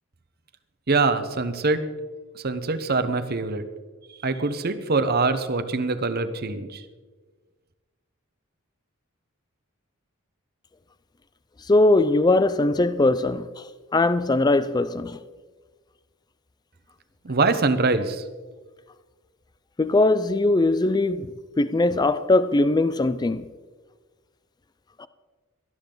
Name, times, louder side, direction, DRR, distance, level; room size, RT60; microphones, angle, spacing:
voice 1, 0.9-1.8 2.3-3.6 4.2-6.8 17.2-18.2, right 3 dB, 50° right, 1.0 m, -24 dB
voice 2, 11.7-13.6 13.9-15.2 19.8-21.3 21.6-23.4 25.0-25.1, left 2 dB, 20° left, 0.4 m, -20 dB
18.5 x 12.5 x 3.9 m
head